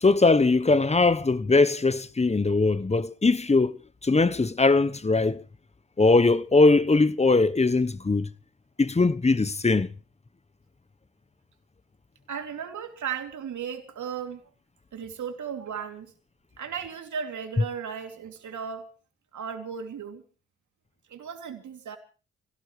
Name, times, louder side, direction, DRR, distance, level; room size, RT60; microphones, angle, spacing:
voice 1, 0.0-3.7 4.0-5.4 6.0-8.3 8.8-9.9, left 3 dB, 20° left, 1.0 m, -21 dB
voice 2, 12.3-14.5 14.9-16.1 16.6-18.9 19.3-20.2 21.1-22.0, right 7 dB, 65° right, 2.8 m, -35 dB
26.5 x 17.0 x 3.2 m
hypercardioid pair, 45°, 32 cm